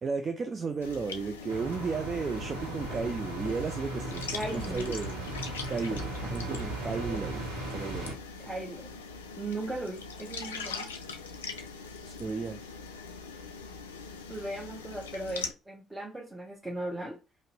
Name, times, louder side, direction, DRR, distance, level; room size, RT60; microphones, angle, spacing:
voice 1, 0.0-4.2 4.5-5.2 5.7-8.2 12.0-12.6, right 5 dB, 35° right, 0.3 m, -34 dB
sound 1, 0.8-15.5, left 4 dB, 80° left, 0.3 m, -42 dB
sound 2, 1.5-8.1, right 1 dB, 80° right, 0.7 m, -37 dB
voice 2, 4.3-5.0 8.4-8.9 9.4-10.9 14.3-17.2, right 2 dB, 15° right, 0.7 m, -37 dB
2.6 x 2.1 x 3.9 m
figure-of-eight pair, 50°, 0 cm